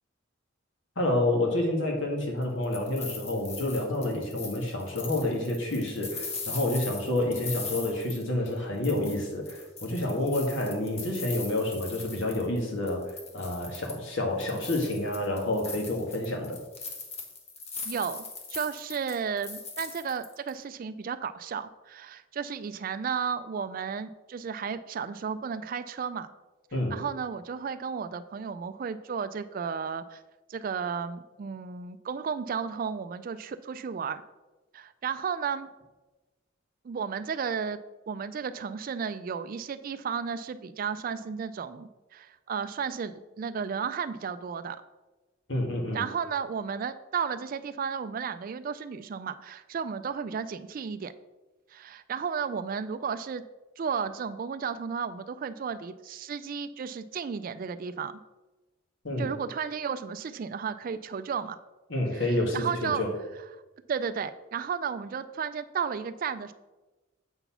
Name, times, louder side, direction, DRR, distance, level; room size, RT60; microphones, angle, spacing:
voice 1, 0.9-16.6 26.7-26.9 45.5-46.0 59.0-59.3 61.9-63.1, left 1 dB, 70° left, 1 dB, 1.6 m, -29 dB
sound 1, 2.4-8.6 8.8-12.6 12.9-14.0 14.4-20.5, left 4 dB, 30° left, 1.1 m, -40 dB
voice 2, 17.8-18.2 18.5-26.3 26.9-30.2 30.5-34.2 34.7-35.7 36.8-37.8 38.1-44.8 45.9-51.1 51.7-53.4 53.8-58.1 59.2-61.6 62.1-63.0 63.9-66.5, right 6 dB, 45° right, 12 dB, 0.3 m, -33 dB
7.9 x 4.1 x 5.7 m, 1.1 s
head